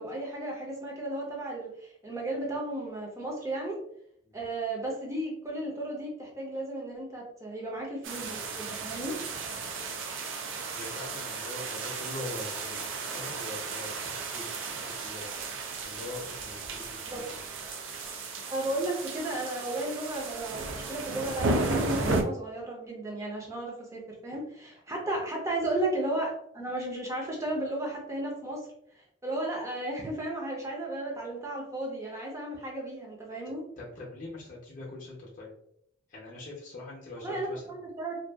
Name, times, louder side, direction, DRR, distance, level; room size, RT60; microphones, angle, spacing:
voice 1, 0.0-3.8 4.3-9.1 17.0-17.2 18.5-28.7 29.2-33.6 37.2-38.1, right 1 dB, 15° right, -2 dB, 0.6 m, -34 dB
sound 1, 8.0-22.2, right 3 dB, 75° right, 0.4 m, -34 dB
voice 2, 10.7-15.3 15.8-17.4 24.9-25.0 33.8-35.5 36.1-37.6, left 2 dB, 40° left, -4 dB, 0.6 m, -43 dB
2.6 x 2.3 x 2.3 m, 0.71 s
head